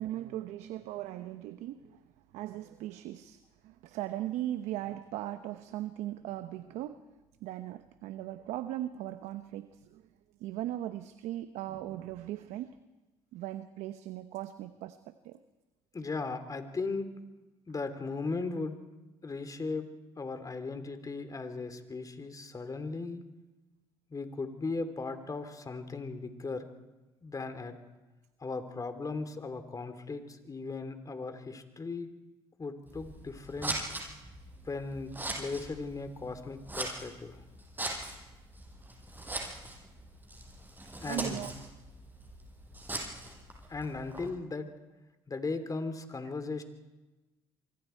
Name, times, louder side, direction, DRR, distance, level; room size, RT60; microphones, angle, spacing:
voice 1, 0.0-2.0 2.3-7.0 7.4-10.0 10.4-12.8 13.3-15.4 41.1-41.5, right 13 dB, 75° right, 11 dB, 0.9 m, -38 dB
voice 2, 15.9-17.1 17.7-18.8 19.2-19.9 20.2-23.2 24.1-26.7 27.2-27.7 28.4-32.1 32.6-33.7 34.6-37.4 41.0-41.4 43.7-44.7 45.3-46.6, left 3 dB, 30° left, 9 dB, 3.2 m, -37 dB
Scissors, 32.9-44.3, right 1 dB, 15° right, 7.2 m, -41 dB
25.5 x 24.5 x 4.6 m, 1.1 s
supercardioid pair, 65°, 12 cm